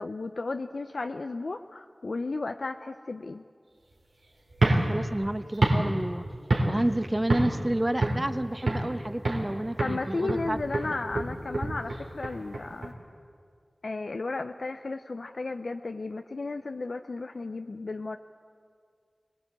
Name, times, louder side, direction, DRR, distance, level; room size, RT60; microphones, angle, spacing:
voice 1, 0.0-3.4 9.8-12.9 13.8-18.2, left 3 dB, 70° left, 7 dB, 0.6 m, -34 dB
sound 1, 4.5-7.0 7.3-7.6 8.0-8.9 9.2-9.5 9.8-12.9, right 2 dB, 85° right, 3.4 m, -27 dB
voice 2, 4.6-6.3 6.6-10.6 10.8-11.0, right 1 dB, 25° right, 11 dB, 1.0 m, -30 dB
23.5 x 19.5 x 8.2 m, 2.2 s
wide cardioid pair, 50°, 0 cm